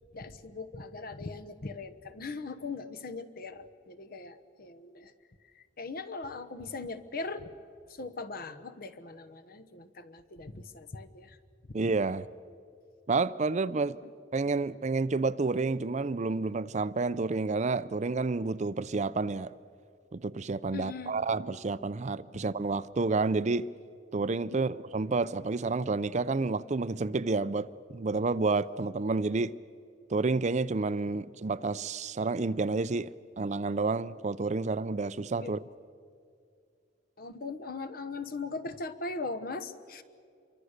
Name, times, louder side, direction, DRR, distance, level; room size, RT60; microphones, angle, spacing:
voice 1, 0.1-5.1 5.5-7.5 7.9-11.4 14.0-14.1 20.7-21.2 24.5-24.7 35.4-35.6 37.2-40.0, left 3 dB, 55° left, 1.1 m, -40 dB
voice 2, 11.7-12.3 13.1-14.0 14.3-19.5 20.1-23.7 24.1-29.5 30.1-33.1 33.4-35.6, right 3 dB, 40° right, 0.5 m, -30 dB
27.5 x 23.5 x 6.6 m
head